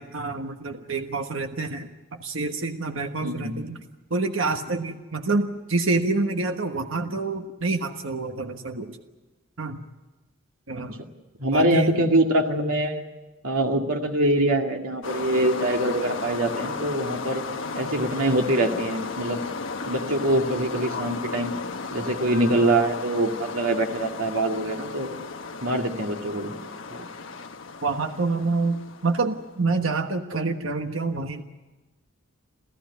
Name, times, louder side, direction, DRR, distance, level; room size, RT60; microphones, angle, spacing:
voice 1, 0.0-3.8 4.1-9.0 9.6-9.8 10.7-11.0 11.5-12.1 27.8-31.4, right 3 dB, 70° right, 5 dB, 1.4 m, -27 dB
voice 2, 3.2-3.6 10.7-10.8 11.4-13.0 13.4-17.4 17.7-19.4 19.9-21.5 21.9-25.1 25.6-26.5 26.9-27.1, right 1 dB, 90° right, 2 dB, 2.2 m, -24 dB
sound 1, 15.0-29.5, left 4 dB, 65° left, 1.2 m, -35 dB
28.0 x 14.5 x 9.7 m, 1.2 s
head